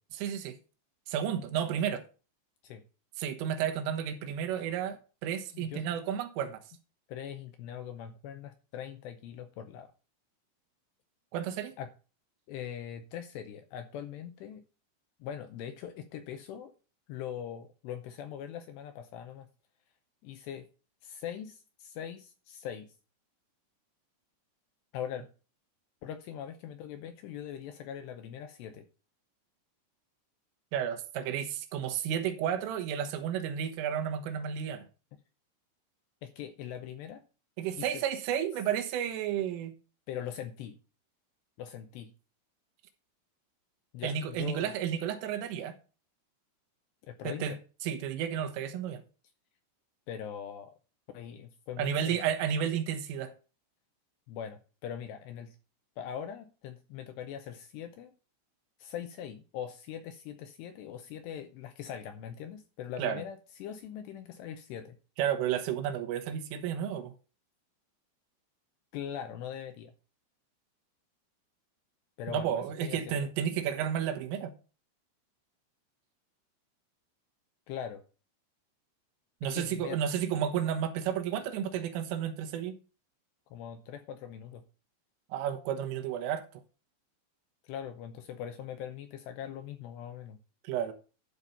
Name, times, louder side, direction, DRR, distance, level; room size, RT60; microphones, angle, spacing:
voice 1, 0.1-0.6 1.1-2.0 3.2-6.6 11.3-11.7 30.7-34.9 37.6-39.7 44.0-45.8 47.3-49.0 51.8-53.3 63.0-63.2 65.2-67.1 72.3-74.5 79.4-82.7 85.3-86.5 90.7-90.9, right 9 dB, 85° right, 3.7 m, -32 dB
voice 2, 7.1-9.9 11.8-11.9 12.5-14.6 15.2-16.7 17.1-19.5 20.2-20.6 21.0-22.9 24.9-25.3 26.0-28.9 36.2-37.2 37.8-38.0 40.1-40.8 41.6-42.1 43.9-44.7 47.1-47.6 50.1-50.7 51.1-52.2 54.3-55.6 56.0-58.1 58.8-65.0 68.9-69.9 72.2-73.3 77.7-78.0 79.5-80.0 80.3-80.4 83.5-84.6 87.6-90.4, left 9 dB, 85° left, 2.5 m, -41 dB
12.0 x 4.2 x 6.8 m
omnidirectional pair, 5.7 m